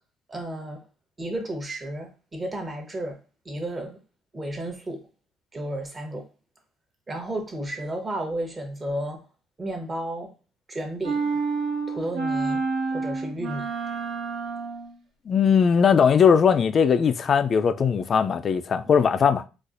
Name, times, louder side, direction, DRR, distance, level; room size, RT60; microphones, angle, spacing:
voice 1, 0.3-0.8 1.2-3.2 3.4-4.0 4.3-5.1 5.5-6.3 7.1-9.2 9.6-10.3 10.7-11.4 11.9-12.6 12.9-13.7, right 1 dB, 25° right, 0.9 m, -32 dB
sound 1, 11.0-14.9, right 4 dB, 80° right, 1.0 m, -28 dB
voice 2, 15.3-19.4, left 6 dB, 40° left, 0.3 m, -19 dB
4.1 x 2.4 x 2.5 m
cardioid pair, 110°, 0 cm